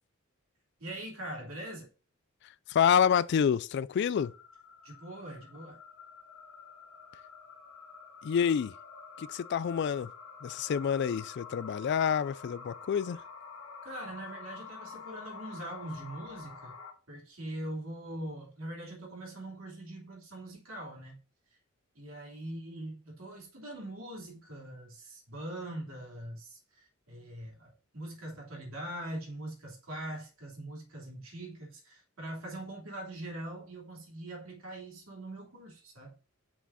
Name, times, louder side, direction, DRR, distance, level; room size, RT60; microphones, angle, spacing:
voice 1, 0.8-1.9 4.8-5.8 13.8-16.8 17.1-21.2 21.9-36.2, right 1 dB, 80° right, 2.9 m, -42 dB
voice 2, 2.7-4.3 8.2-8.7 9.2-10.1 10.4-13.2, left 8 dB, 55° left, 0.3 m, -28 dB
sound 1, 4.1-16.9, left 5 dB, 80° left, 1.8 m, -48 dB
5.8 x 4.8 x 4.1 m
head